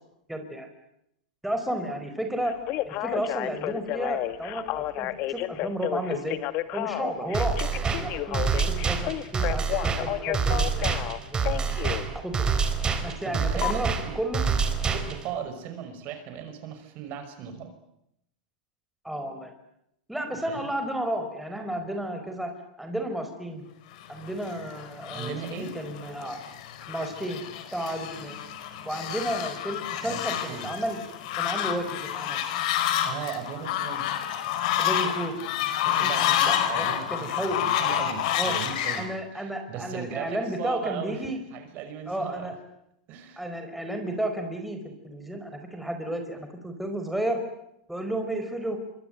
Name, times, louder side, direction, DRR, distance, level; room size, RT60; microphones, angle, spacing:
voice 1, 0.3-0.7 1.4-2.6 2.8-6.4 6.7-10.9 11.3-11.9 12.1-12.5 13.0-14.4 19.0-19.5 20.1-22.5 22.8-23.6 24.1-26.4 26.9-27.4 27.7-28.3 28.8-31.0 31.4-32.4 34.8-35.3 35.8-36.1 36.5-37.6 38.3-38.5 39.0-41.4 42.1-42.5 43.4-47.4 47.9-48.8, right 1 dB, ahead, 5 dB, 4.8 m, -32 dB
Telephone, 2.5-12.0 13.6-13.7, left 15 dB, 45° left, 1.9 m, -31 dB
sound 1, 7.3-15.3, right 5 dB, 20° right, 4.2 m, -27 dB
voice 2, 12.9-14.2 14.9-17.7 20.5-20.7 25.1-25.8 30.0-30.7 33.0-34.1 35.8-41.2 41.5-42.5 43.1-43.4, right 8 dB, 45° right, 8 dB, 5.7 m, -38 dB
Fowl, 24.2-39.1, left 10 dB, 60° left, 5.2 m, -29 dB
26.5 x 24.5 x 9.2 m, 0.79 s
hypercardioid pair, 120°, 4 cm